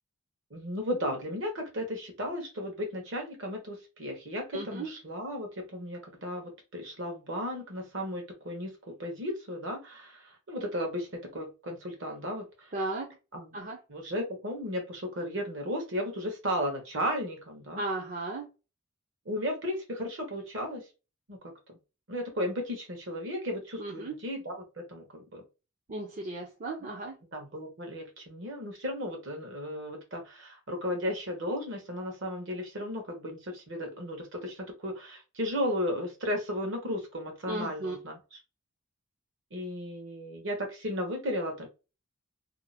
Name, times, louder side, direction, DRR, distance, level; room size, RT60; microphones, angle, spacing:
voice 1, 0.5-12.7 13.3-13.5 13.9-17.8 19.2-20.9 21.3-21.5 22.1-25.4 26.8-26.9 27.3-38.4 39.5-41.7, equal, 60° right, 1.1 m, -35 dB
voice 2, 4.5-4.9 12.7-13.1 13.5-13.8 17.8-18.5 23.8-24.1 25.9-27.2 37.5-38.0, right 2 dB, 40° right, 0.6 m, -35 dB
2.7 x 2.1 x 4.0 m
head